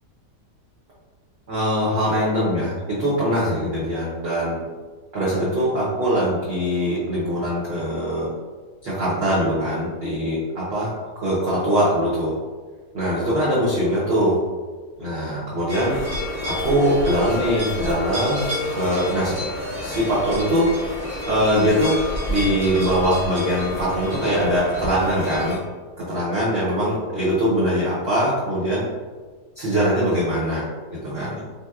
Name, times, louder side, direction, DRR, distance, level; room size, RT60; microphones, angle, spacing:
voice 1, 1.5-4.6 5.1-8.3 8.8-10.9 11.2-12.3 12.9-14.4 15.0-16.0 16.5-19.4 19.8-20.7 21.2-22.0 22.3-25.6 26.0-28.9 29.6-30.6 30.9-31.4, equal, 55° right, -8 dB, 0.7 m, -22 dB
sound 1, 15.7-25.6, left 1 dB, 10° right, 0.8 m, -29 dB
3.3 x 2.7 x 2.3 m, 1.4 s
omnidirectional pair, 1.8 m